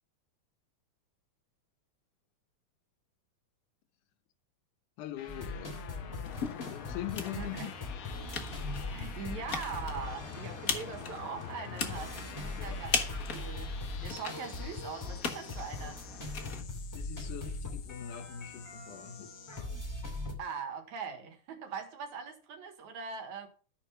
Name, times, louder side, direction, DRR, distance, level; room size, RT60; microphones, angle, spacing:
voice 1, 5.0-5.8 6.7-7.7 12.3-12.8 16.9-19.4, left 11 dB, 90° left, 2.5 m, -42 dB
sound 1, 5.2-19.6, left 8 dB, 65° left, 1.3 m, -49 dB
sound 2, 5.3-20.3, left 2 dB, 5° left, 2.0 m, -41 dB
sound 3, 6.2-16.6, left 5 dB, 45° left, 1.1 m, -39 dB
voice 2, 7.4-7.7 8.9-13.7 14.0-16.0 20.4-23.5, right 6 dB, 70° right, 3.0 m, -41 dB
13.0 x 5.9 x 5.7 m
omnidirectional pair, 3.5 m